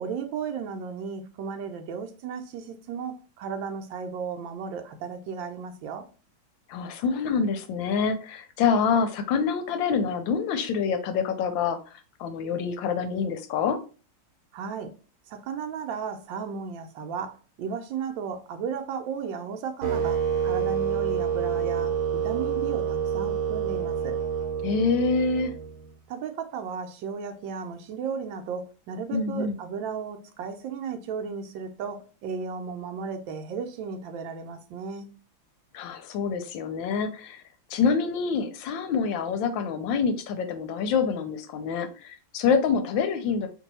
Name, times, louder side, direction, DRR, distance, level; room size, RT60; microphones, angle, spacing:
voice 1, 0.0-6.1 14.5-14.9 15.3-24.2 26.1-35.1, right 6 dB, 75° right, 1.2 m, -35 dB
voice 2, 6.7-11.8 12.2-13.8 24.6-25.5 29.1-29.6 35.7-37.4 37.7-43.5, left 5 dB, 75° left, 1.2 m, -26 dB
sound 1, 19.8-25.9, right 8 dB, 55° right, 1.0 m, -28 dB
3.0 x 2.7 x 4.0 m
omnidirectional pair, 2.2 m